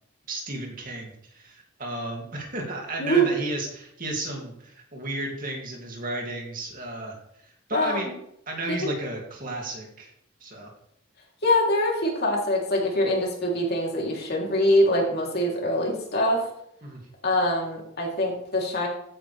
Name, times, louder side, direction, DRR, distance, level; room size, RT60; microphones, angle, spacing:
voice 1, 0.3-7.1 7.4-8.1 8.5-10.1 10.4-10.7 16.8-17.0, right 2 dB, 40° right, 0 dB, 2.6 m, -33 dB
voice 2, 11.4-16.5 17.2-18.9, equal, 50° left, -2 dB, 3.4 m, -24 dB
15.0 x 9.0 x 3.4 m, 0.73 s
head